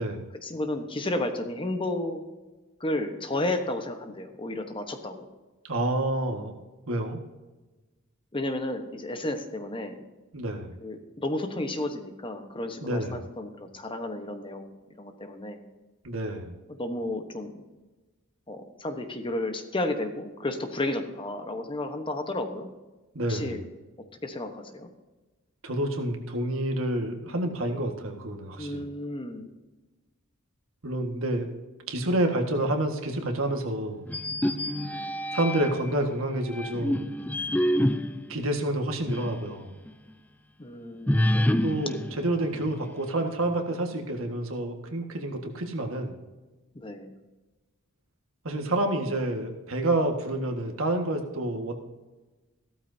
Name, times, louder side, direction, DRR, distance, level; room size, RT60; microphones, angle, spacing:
voice 1, 0.4-2.2 2.8-5.3 8.3-10.0 10.8-14.7 15.0-15.6 16.8-17.6 18.5-22.7 23.3-23.6 24.2-24.9 28.6-29.5 40.6-41.6 46.7-47.1, left 1 dB, 25° left, 6 dB, 1.1 m, -32 dB
voice 2, 5.6-6.5 6.9-7.2 10.3-10.8 12.8-13.3 16.0-16.6 23.1-23.6 25.6-28.9 30.8-31.5 31.9-34.0 35.3-37.1 38.3-39.7 41.6-46.2 48.4-51.7, right 1 dB, 75° right, 3 dB, 1.7 m, -28 dB
sound 1, 34.1-35.9 36.5-39.5 39.9-40.0 41.1-43.1, left 1 dB, 10° left, 0.4 m, -28 dB
15.0 x 13.0 x 2.8 m, 1.2 s
head